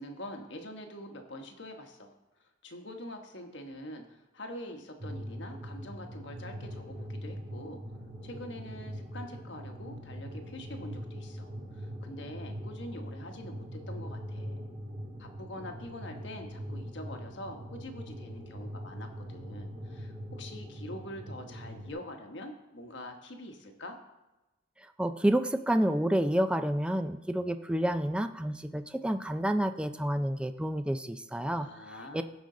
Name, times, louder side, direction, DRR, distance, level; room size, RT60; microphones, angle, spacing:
voice 1, 0.0-2.2 2.6-7.8 8.2-14.7 15.2-24.0 31.5-32.2, left 1 dB, 75° left, 4 dB, 1.2 m, -45 dB
sound 1, 5.0-21.9, equal, 55° right, 3.6 m, -42 dB
voice 2, 25.0-31.7 32.1-32.2, right 1 dB, 5° right, 9 dB, 0.4 m, -29 dB
15.5 x 5.2 x 3.8 m, 1.0 s
head